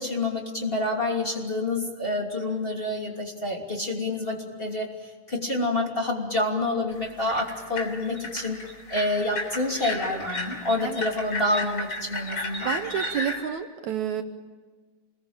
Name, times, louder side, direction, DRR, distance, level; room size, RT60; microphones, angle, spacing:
voice 1, 0.0-8.6 8.9-12.7, left 2 dB, 15° left, 1 dB, 2.8 m, -28 dB
sound 1, 6.9-13.4, left 2 dB, 35° left, 4.0 m, -34 dB
voice 2, 12.6-14.2, right 9 dB, 70° right, 7 dB, 2.2 m, -29 dB
28.0 x 21.0 x 8.9 m, 1.4 s
omnidirectional pair, 3.8 m